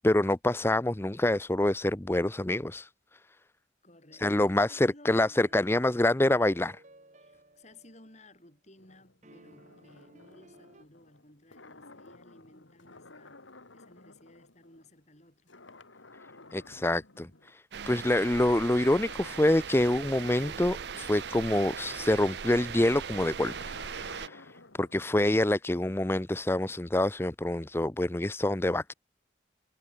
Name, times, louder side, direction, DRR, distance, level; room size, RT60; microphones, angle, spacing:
voice 1, 0.0-2.9 4.2-6.8 16.5-28.9, left 1 dB, 10° left, 0.5 m, -26 dB
voice 2, 3.8-5.2 7.2-13.4 13.7-15.6, left 1 dB, 35° left, 6.5 m, -57 dB
sound 1, 5.1-8.4 9.2-10.8, right 1 dB, 40° right, 3.4 m, -57 dB
sound 2, 8.8-15.2 15.5-17.5 17.9-25.1, left 3 dB, 90° left, 3.3 m, -54 dB
sound 3, 17.7-24.3, right 7 dB, 60° right, 0.5 m, -39 dB
head